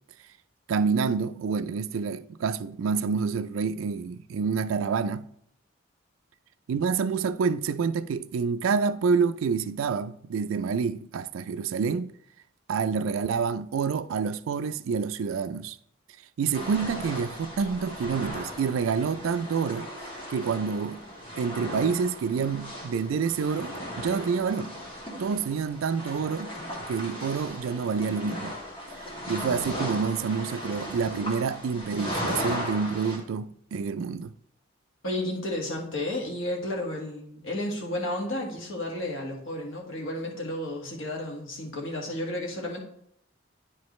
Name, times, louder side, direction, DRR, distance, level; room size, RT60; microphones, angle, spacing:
voice 1, 0.7-5.3 6.7-12.1 12.7-15.8 16.4-19.9 20.3-21.0 21.4-24.7 25.2-26.6 26.9-28.6 29.3-34.3, right 5 dB, 80° right, 0.3 m, -28 dB
sound 1, 16.5-33.2, equal, 25° left, 1.5 m, -37 dB
voice 2, 35.0-42.8, left 1 dB, 80° left, 1.6 m, -32 dB
9.6 x 4.7 x 3.1 m
head